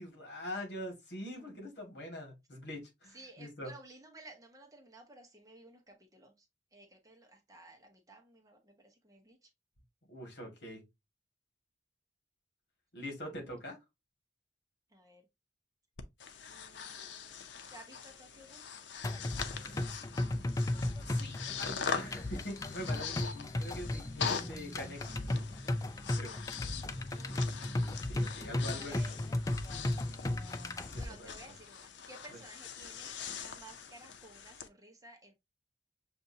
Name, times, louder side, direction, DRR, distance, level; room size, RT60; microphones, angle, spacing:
voice 1, 0.0-3.7 10.1-10.8 12.9-13.8 19.5-19.9 21.1-25.5 26.1-26.3 28.0-29.3 30.9-31.4, left 1 dB, 65° left, 2.1 m, -44 dB
voice 2, 3.1-6.5 6.7-9.5 14.9-15.2 16.5-18.7 27.1-27.8 28.7-29.2 30.9-35.3, right 2 dB, 20° right, 1.0 m, -55 dB
Breathing, 16.0-34.7, left 6 dB, 85° left, 0.6 m, -43 dB
sound 1, 19.0-31.0, left 1 dB, 20° left, 0.3 m, -35 dB
6.7 x 2.6 x 2.8 m
head